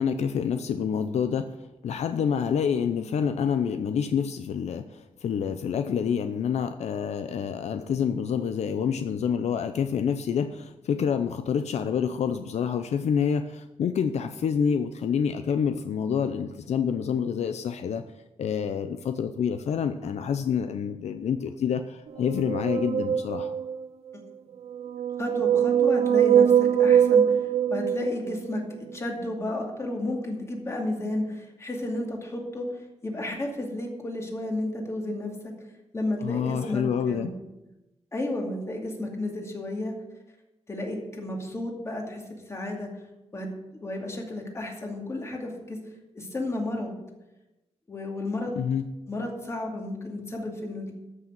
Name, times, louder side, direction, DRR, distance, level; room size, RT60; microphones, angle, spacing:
voice 1, 0.0-1.5 1.8-18.0 18.4-23.5 36.2-37.3 48.6-48.9, left 7 dB, 80° left, 9 dB, 0.6 m, -27 dB
sound 1, 22.2-23.9 24.7-28.6, right 8 dB, 70° right, 0.7 m, -22 dB
voice 2, 25.2-35.5 35.9-37.3 38.1-39.9 40.7-42.2 42.5-42.9 43.3-45.8 46.1-47.0 47.9-48.6 49.1-50.9, left 1 dB, 25° left, 1 dB, 2.4 m, -32 dB
13.0 x 6.3 x 7.6 m, 0.99 s
wide cardioid pair, 150°, 11 cm